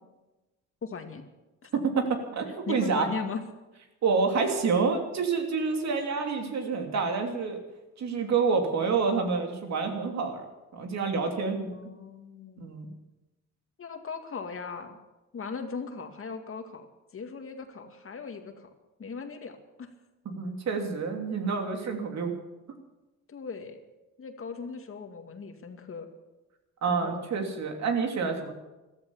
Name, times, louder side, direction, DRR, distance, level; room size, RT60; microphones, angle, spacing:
voice 1, 0.8-1.2 1.6-1.7 2.7-3.4 11.7-12.7 13.8-15.0 15.3-16.9 17.1-18.7 19.0-19.9 23.3-23.8 24.2-26.1 26.8-27.3, left 5 dB, 45° left, 6 dB, 2.1 m, -38 dB
voice 2, 1.7-3.1 4.0-7.6 8.0-10.4 10.7-11.7 12.6-12.9 20.2-22.3 26.8-28.5, right 5 dB, 65° right, 4 dB, 3.0 m, -28 dB
14.5 x 13.5 x 7.2 m, 1.1 s
cardioid pair, 90°, 30 cm